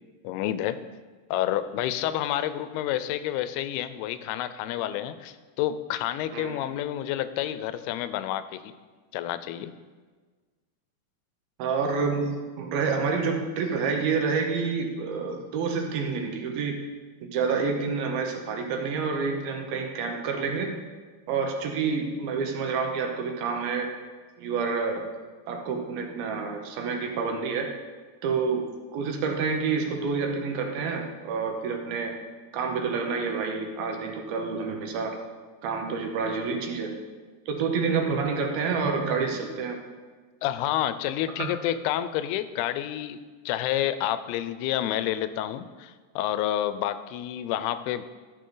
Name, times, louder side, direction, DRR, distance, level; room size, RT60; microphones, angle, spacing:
voice 1, 0.2-0.8 1.3-8.7 9.1-9.7 40.4-48.0, left 12 dB, 85° left, 12 dB, 2.5 m, -29 dB
voice 2, 11.6-16.8 17.2-20.8 21.3-23.9 24.4-25.1 25.5-27.7 28.2-28.7 28.9-32.1 32.5-35.2 35.6-36.9 37.5-39.8 41.4-41.5, right 5 dB, 75° right, 3 dB, 2.7 m, -28 dB
14.0 x 7.1 x 3.8 m, 1.4 s
omnidirectional pair, 4.5 m